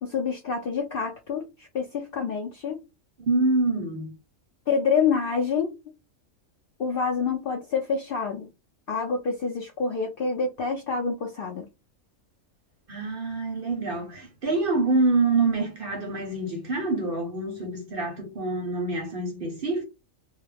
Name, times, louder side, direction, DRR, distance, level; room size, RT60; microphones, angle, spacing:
voice 1, 0.0-2.8 4.7-5.7 6.8-8.5 8.9-11.7, left 5 dB, 65° left, 0.5 m, -27 dB
voice 2, 3.2-4.1 12.9-19.8, right 3 dB, 55° right, 0.7 m, -26 dB
2.3 x 2.1 x 3.2 m
omnidirectional pair, 1.4 m